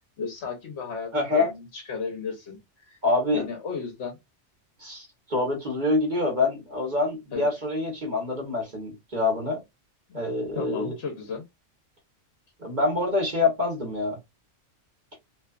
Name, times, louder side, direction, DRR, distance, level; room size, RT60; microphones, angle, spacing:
voice 1, 0.2-3.0 3.3-4.2 7.3-7.5 10.1-10.2 10.5-11.4, left 5 dB, 70° left, 1.0 m, -34 dB
voice 2, 1.1-1.5 3.0-3.4 4.8-9.6 10.1-10.9 12.6-14.2, left 2 dB, 40° right, 1.1 m, -26 dB
2.6 x 2.3 x 2.3 m
omnidirectional pair, 1.2 m